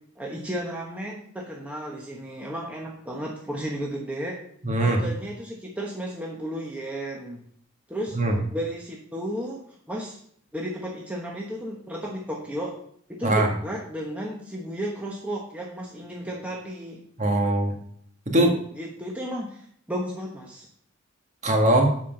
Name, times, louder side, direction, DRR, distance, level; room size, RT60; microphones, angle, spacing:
voice 1, 0.2-4.4 4.8-7.4 7.9-8.2 8.5-10.2 10.5-12.8 13.1-17.0 18.8-20.7, equal, 5° right, -2 dB, 1.0 m, -33 dB
voice 2, 4.6-5.0 8.1-8.3 13.2-13.5 17.2-17.7 18.2-18.6 21.4-22.0, right 1 dB, 35° right, 2 dB, 1.7 m, -21 dB
8.2 x 5.7 x 5.8 m, 0.64 s
head